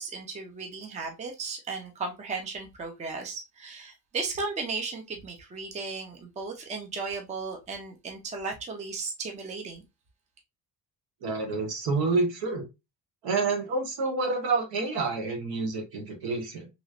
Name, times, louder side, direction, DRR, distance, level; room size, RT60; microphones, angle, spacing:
voice 1, 0.0-9.8, right 4 dB, 20° right, 0.5 m, -35 dB
voice 2, 11.2-12.6 13.2-16.7, right 3 dB, 70° right, 1.3 m, -28 dB
3.1 x 3.0 x 2.4 m
cardioid pair, 175°, 38 cm